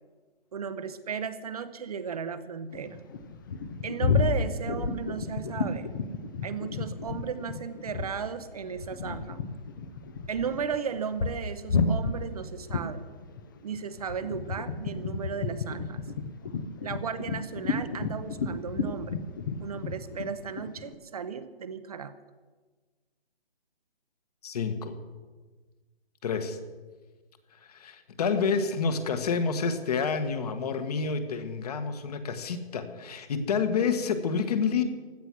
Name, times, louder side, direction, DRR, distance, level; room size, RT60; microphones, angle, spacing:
voice 1, 0.5-3.0 3.8-5.9 6.4-9.4 10.3-13.1 13.6-16.0 16.8-19.2 19.6-22.1, right 6 dB, 40° right, 11 dB, 0.8 m, -35 dB
sound 1, 2.7-8.3 8.5-20.9, left 4 dB, 20° left, 0.6 m, -31 dB
voice 2, 24.4-24.9 26.2-26.6 27.7-34.8, left 5 dB, 40° left, 9 dB, 1.6 m, -28 dB
16.0 x 12.5 x 6.1 m, 1.3 s
hypercardioid pair, 155°, 31 cm